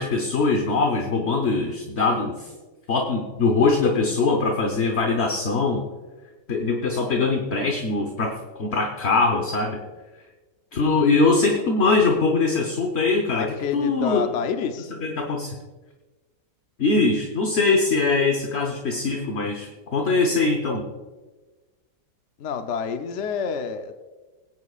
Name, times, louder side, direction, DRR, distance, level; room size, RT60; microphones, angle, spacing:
voice 1, 0.0-2.5 2.9-5.9 6.5-9.8 10.7-14.3 14.9-15.5 16.8-20.8, left 3 dB, 45° left, 2 dB, 1.1 m, -22 dB
voice 2, 13.4-14.9 22.4-23.9, left 6 dB, 60° left, 7 dB, 0.8 m, -28 dB
21.5 x 9.6 x 2.4 m, 1.2 s
omnidirectional pair, 1.9 m